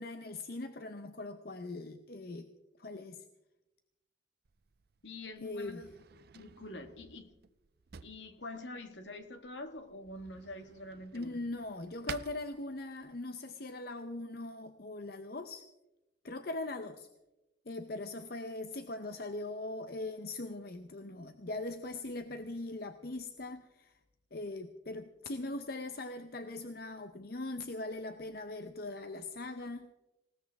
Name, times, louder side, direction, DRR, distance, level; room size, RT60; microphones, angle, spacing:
voice 1, 0.0-2.5 2.8-3.2 5.4-5.8 11.1-15.6 16.2-17.1 17.7-24.0 24.3-29.9, left 2 dB, 55° left, 8 dB, 0.8 m, -41 dB
Drawer open or close, 4.4-13.2, right 6 dB, 55° right, 0.5 m, -52 dB
voice 2, 5.0-5.9 6.3-7.3 8.0-11.4, left 2 dB, 70° left, 7 dB, 1.6 m, -46 dB
20.0 x 18.0 x 3.5 m, 0.97 s
head